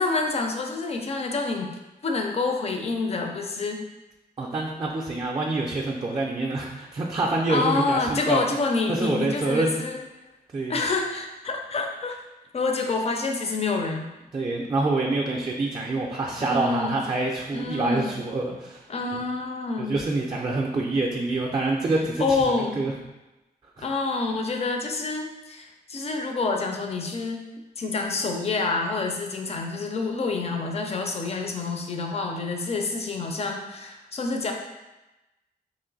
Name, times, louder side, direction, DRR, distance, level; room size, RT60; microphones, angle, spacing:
voice 1, 0.0-1.8 2.0-3.9 7.5-10.0 10.7-12.2 12.5-14.1 16.4-17.0 17.5-18.2 18.9-20.0 22.2-22.9 23.8-27.4 27.8-34.5, left 3 dB, 40° left, 3 dB, 0.4 m, -27 dB
voice 2, 4.4-8.4 8.9-9.8 10.5-10.8 14.3-18.8 19.1-19.2 19.8-22.9 23.8-23.9, right 2 dB, 30° right, -2 dB, 0.3 m, -26 dB
3.0 x 2.5 x 3.9 m, 1.0 s
wide cardioid pair, 165°, 16 cm